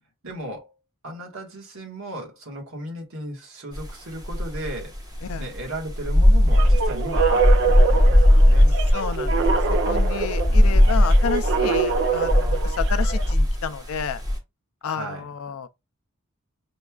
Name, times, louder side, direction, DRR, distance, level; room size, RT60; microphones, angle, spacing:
voice 1, 0.2-0.7 1.0-4.9 5.4-8.7 10.5-11.1 14.9-15.2, right 1 dB, 75° right, 1.5 m, -36 dB
sound 1, 3.7-3.9 4.2-14.4, left 1 dB, 20° right, 0.9 m, -19 dB
sound 2, 6.5-13.3, right 5 dB, 60° right, 0.5 m, -25 dB
voice 2, 8.9-9.4 9.7-14.2 14.8-15.7, left 6 dB, 90° left, 0.4 m, -31 dB
5.3 x 2.3 x 2.3 m
head